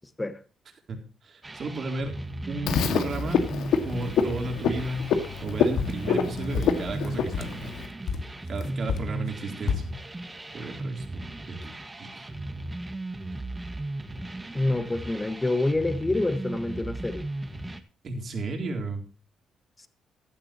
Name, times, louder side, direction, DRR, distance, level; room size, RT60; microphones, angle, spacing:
voice 1, 0.9-2.2 2.5-3.4 3.8-5.1 5.4-7.7 8.5-10.0 10.5-12.4 18.0-19.0, right 2 dB, 50° right, 3.9 m, -33 dB
sound 1, 1.4-17.8, right 2 dB, 20° right, 1.7 m, -36 dB
Frog, 2.7-7.9, left 6 dB, 80° left, 1.9 m, -27 dB
sound 2, 5.8-7.6 8.1-10.0, left 7 dB, 60° left, 1.0 m, -31 dB
voice 2, 14.5-17.3, left 2 dB, 15° left, 1.6 m, -27 dB
15.5 x 11.0 x 3.0 m
cardioid pair, 90°, 0 cm